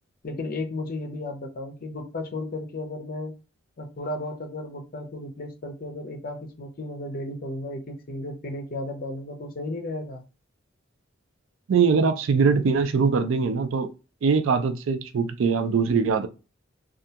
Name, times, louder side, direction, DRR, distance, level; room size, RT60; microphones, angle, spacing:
voice 1, 0.2-3.3 3.8-10.2, left 2 dB, 45° left, 0.5 m, -34 dB
voice 2, 11.7-13.9 14.2-16.3, right 5 dB, 80° right, 0.4 m, -22 dB
2.4 x 2.2 x 2.7 m
head